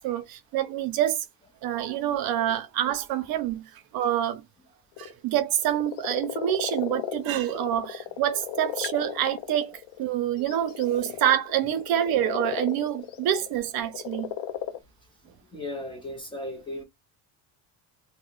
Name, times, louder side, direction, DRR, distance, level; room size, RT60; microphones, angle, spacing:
voice 1, 0.0-1.2 1.6-3.6 3.9-4.4 5.0-14.3, right 11 dB, 55° right, 0.6 m, -27 dB
sound 1, 5.0-5.1 5.6-10.1 10.4-14.8, left 11 dB, 65° left, 0.6 m, -35 dB
voice 2, 15.5-16.8, left 1 dB, 10° left, 0.5 m, -35 dB
2.8 x 2.1 x 3.7 m
cardioid pair, 175°, 44 cm